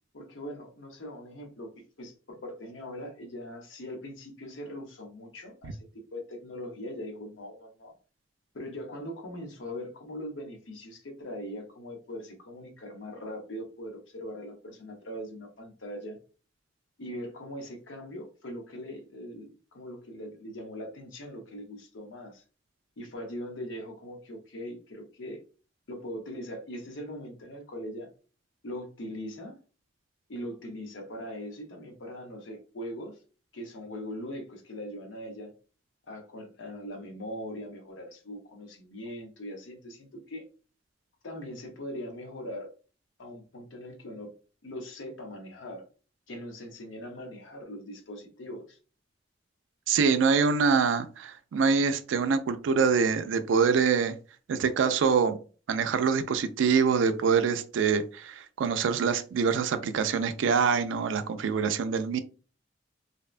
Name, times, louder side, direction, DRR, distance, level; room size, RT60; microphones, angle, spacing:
voice 1, 0.1-5.8 6.1-7.9 8.5-16.2 17.0-22.4 23.0-25.4 25.9-28.1 28.6-29.6 30.3-33.1 33.5-35.5 36.1-40.4 41.2-42.7 43.2-44.3 44.6-45.9 46.3-48.8, equal, 85° left, 0.7 m, -41 dB
voice 2, 49.9-54.2 54.5-55.4 55.7-62.2, right 5 dB, 75° right, 0.3 m, -25 dB
2.7 x 2.1 x 2.4 m
head